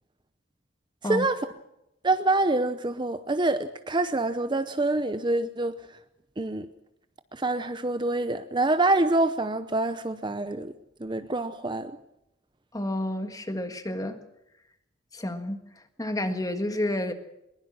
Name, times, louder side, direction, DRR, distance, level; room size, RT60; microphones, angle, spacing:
voice 1, 1.0-1.5 2.0-5.8 6.4-6.7 7.3-10.7 11.0-11.9, right 2 dB, 25° right, 0.7 m, -26 dB
voice 2, 12.7-14.2 15.1-15.6 16.0-17.1, left 1 dB, 20° left, 1.6 m, -30 dB
22.0 x 20.5 x 6.2 m
head